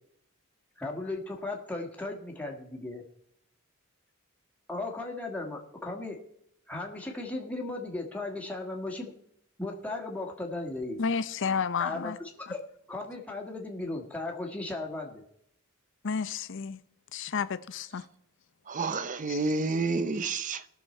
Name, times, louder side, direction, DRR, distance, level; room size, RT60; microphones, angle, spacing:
voice 1, 0.8-3.0 4.7-6.2 6.7-9.1 9.6-11.0 11.8-12.1 12.5-12.6 12.9-15.2, left 2 dB, 5° left, 1.6 m, -36 dB
voice 2, 11.0-12.2 12.5-12.6 16.0-16.8 17.1-18.1 19.3-19.4, left 5 dB, 60° left, 0.6 m, -31 dB
voice 3, 18.7-20.7, right 3 dB, 35° right, 0.6 m, -29 dB
18.5 x 6.4 x 4.3 m
head